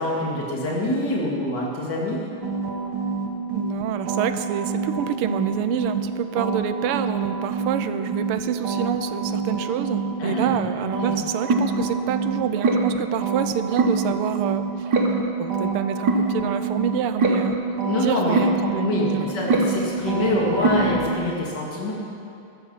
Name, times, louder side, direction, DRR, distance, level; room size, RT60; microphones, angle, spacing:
voice 1, 0.0-2.2 10.2-10.6 11.0-11.2 17.8-18.4 18.8-21.9, left 1 dB, 50° left, -3 dB, 2.9 m, -25 dB
sound 1, 2.4-6.1 6.4-10.6 10.9-21.1, right 3 dB, 55° right, 1.7 m, -25 dB
voice 2, 3.5-15.0 15.4-17.6 17.9-19.3, right 9 dB, 90° right, 11 dB, 1.6 m, -27 dB
14.0 x 12.5 x 5.6 m, 2.6 s
omnidirectional pair, 2.4 m